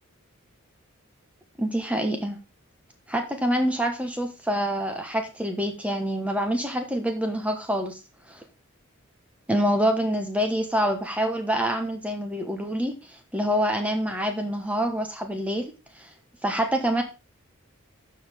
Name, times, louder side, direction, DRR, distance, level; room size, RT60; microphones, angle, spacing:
voice 1, 1.6-2.4 3.1-8.0 8.3-8.4 9.5-16.1 16.4-17.0, equal, 5° right, 4 dB, 1.3 m, -26 dB
12.5 x 4.9 x 3.6 m, 0.29 s
head